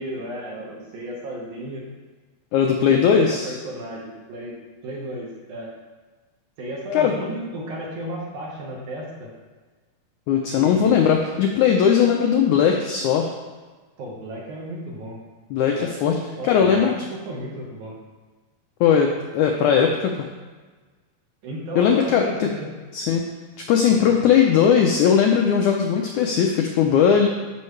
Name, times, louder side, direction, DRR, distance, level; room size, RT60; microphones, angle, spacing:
voice 1, 0.0-1.9 3.2-4.6 4.8-5.7 6.6-9.3 10.5-11.1 14.0-15.2 15.7-18.0 21.4-22.7 23.9-24.1, right 1 dB, 60° right, -3 dB, 2.5 m, -34 dB
voice 2, 2.5-3.5 6.9-7.1 10.3-13.3 15.5-16.1 16.5-16.9 18.8-20.3 21.7-22.5 22.9-23.3 23.7-27.3, left 7 dB, 90° left, 2 dB, 1.7 m, -18 dB
11.5 x 6.4 x 3.2 m, 1.3 s
omnidirectional pair, 4.2 m